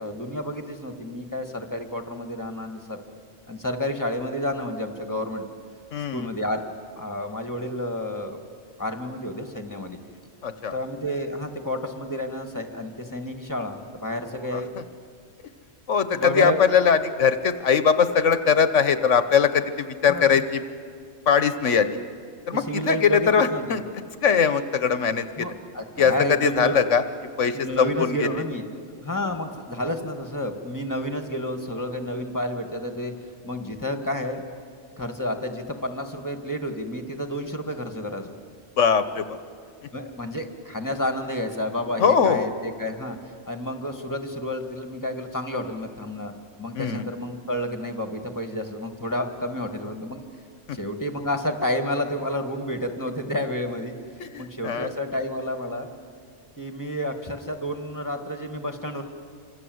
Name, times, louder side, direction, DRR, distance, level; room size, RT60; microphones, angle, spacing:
voice 1, 0.0-3.0 3.5-5.4 6.1-6.6 7.0-8.4 8.8-10.0 10.7-14.7 16.1-16.6 20.1-20.4 22.5-23.8 25.4-26.8 27.5-28.7 29.0-33.1 33.4-34.4 35.0-38.3 39.9-43.2 43.5-46.3 46.6-50.3 50.7-53.9 54.4-55.9 56.6-59.0, left 1 dB, 15° left, 5 dB, 1.9 m, -30 dB
voice 2, 5.9-6.3 10.4-10.7 14.5-14.6 15.9-20.6 21.3-22.0 22.5-23.8 24.2-25.5 26.0-26.1 26.4-27.0 27.4-28.3 38.8-39.4 42.0-42.5 46.7-47.0 50.7-50.8 54.2-54.9, left 6 dB, 80° left, 11 dB, 1.3 m, -21 dB
27.5 x 25.5 x 7.9 m, 2.2 s
omnidirectional pair, 1.3 m